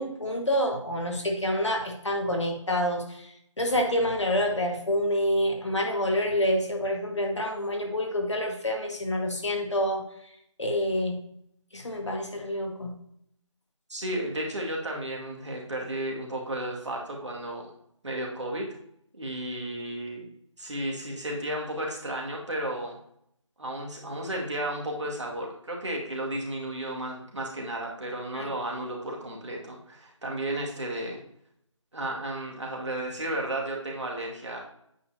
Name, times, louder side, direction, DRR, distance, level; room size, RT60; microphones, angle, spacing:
voice 1, 0.0-3.3 3.6-10.0 10.6-11.2 11.7-12.9 28.3-28.5, equal, 65° left, 2 dB, 1.8 m, -27 dB
voice 2, 13.9-17.7 18.0-18.7 19.1-20.3 20.6-23.0 23.6-31.2 31.9-34.6, right 1 dB, 65° right, -1 dB, 2.1 m, -33 dB
8.6 x 5.2 x 2.8 m, 0.73 s
figure-of-eight pair, 165°, 16 cm